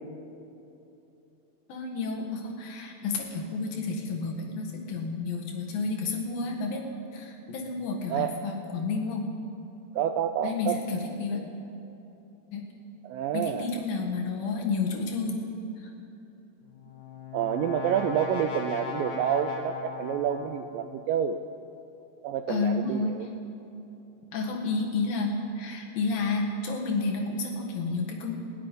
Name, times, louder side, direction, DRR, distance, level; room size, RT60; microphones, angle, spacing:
voice 1, 1.7-9.3 10.4-11.5 12.5-12.7 13.3-15.5 15.8-15.9 22.5-23.3 24.3-28.3, left 3 dB, 70° left, 1 dB, 3.3 m, -31 dB
voice 2, 10.0-10.8 13.0-13.7 17.3-21.4 22.2-23.3, right 9 dB, 80° right, 8 dB, 2.0 m, -28 dB
Brass instrument, 16.6-20.8, left 5 dB, 50° left, 1.3 m, -37 dB
17.0 x 8.4 x 9.8 m, 2.9 s
omnidirectional pair, 4.4 m